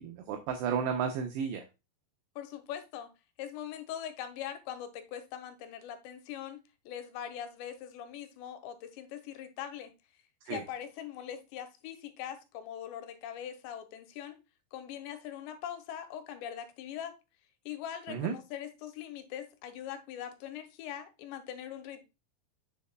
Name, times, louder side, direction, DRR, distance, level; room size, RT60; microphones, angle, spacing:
voice 1, 0.0-1.6 10.5-10.6 18.1-18.3, right 7 dB, 80° right, 2.6 m, -33 dB
voice 2, 2.4-3.1 3.4-9.9 10.5-14.4 14.7-17.2 17.7-22.0, left 10 dB, 80° left, 2.9 m, -42 dB
6.8 x 6.5 x 2.2 m
omnidirectional pair, 5.2 m